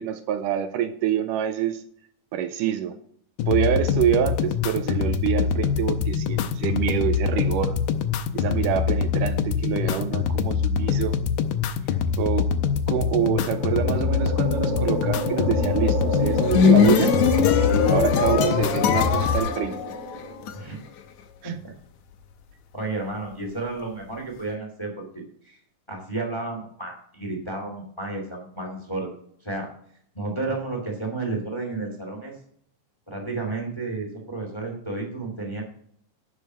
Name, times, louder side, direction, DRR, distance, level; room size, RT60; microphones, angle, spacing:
voice 1, 0.0-1.8 2.3-3.0 3.5-7.8 8.3-11.2 12.2-12.5 12.9-17.1 17.9-19.8 21.4-21.5, right 10 dB, 80° right, 10 dB, 2.1 m, -26 dB
sound 1, 3.4-19.4, left 7 dB, 85° left, 2.3 m, -24 dB
sound 2, 13.0-20.6, equal, 20° right, 1.1 m, -29 dB
sound 3, 16.2-20.5, left 8 dB, 70° left, 2.0 m, -21 dB
voice 2, 22.7-25.6 25.9-29.1 29.4-29.7 30.1-32.4 33.1-35.6, right 3 dB, 10° left, 2 dB, 1.8 m, -32 dB
11.0 x 6.4 x 5.5 m, 0.63 s
omnidirectional pair, 3.9 m